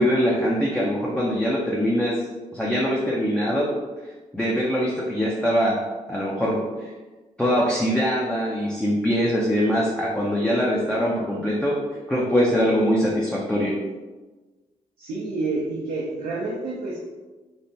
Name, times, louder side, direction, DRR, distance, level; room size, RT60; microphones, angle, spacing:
voice 1, 0.0-2.1 2.5-3.7 4.3-5.8 6.1-6.9 7.4-11.8 12.1-13.7, equal, 5° left, -5 dB, 0.5 m, -22 dB
voice 2, 15.0-17.0, right 3 dB, 85° right, -6 dB, 0.5 m, -28 dB
3.3 x 2.1 x 2.7 m, 1.2 s
cardioid pair, 60°, 15 cm